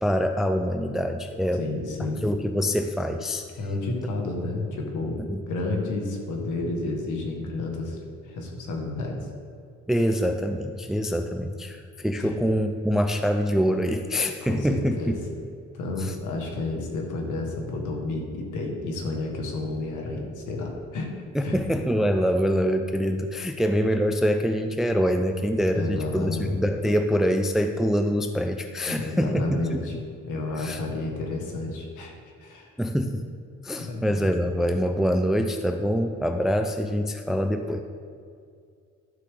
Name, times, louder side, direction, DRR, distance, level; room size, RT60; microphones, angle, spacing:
voice 1, 0.0-1.6 2.2-3.4 5.3-5.4 9.9-15.2 16.0-16.2 21.3-30.0 30.6-30.8 32.8-33.2 33.6-37.8, equal, ahead, 6 dB, 0.5 m, -25 dB
voice 2, 1.6-2.3 3.6-5.2 5.5-9.2 12.2-12.4 14.4-15.2 15.7-21.1 21.4-21.6 25.7-26.6 28.9-29.9 30.2-32.1 32.4-32.7 33.8-34.6, left 2 dB, 80° left, 1 dB, 1.9 m, -31 dB
12.0 x 6.8 x 3.8 m, 2.3 s
cardioid pair, 90°, 30 cm